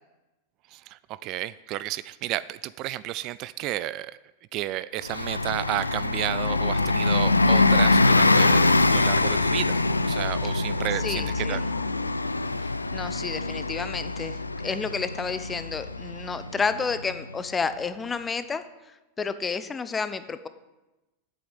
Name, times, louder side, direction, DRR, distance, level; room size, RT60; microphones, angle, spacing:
voice 1, 0.7-4.2 4.5-11.6, right 15 dB, 40° right, 17 dB, 0.3 m, -32 dB
Bus, 5.0-17.3, left 2 dB, 80° left, 0.4 m, -24 dB
Musical instrument, 5.9-12.8, left 6 dB, 55° left, 3.3 m, -44 dB
voice 2, 11.0-11.6 12.6-18.6 19.2-20.5, left 5 dB, 15° left, 12 dB, 0.7 m, -31 dB
8.1 x 8.0 x 8.8 m, 1.1 s
figure-of-eight pair, 90°, 0 cm